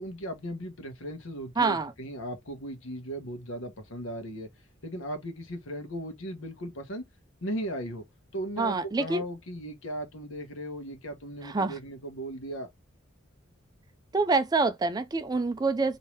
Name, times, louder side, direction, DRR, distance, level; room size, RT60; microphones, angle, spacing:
voice 1, 0.0-4.5 4.8-7.1 7.4-8.0 8.3-12.7, right 1 dB, 90° left, 0.9 m, -37 dB
voice 2, 1.6-1.9 8.6-9.2 11.4-11.7 14.1-16.0, right 3 dB, 20° right, 0.3 m, -26 dB
3.0 x 2.7 x 3.1 m
head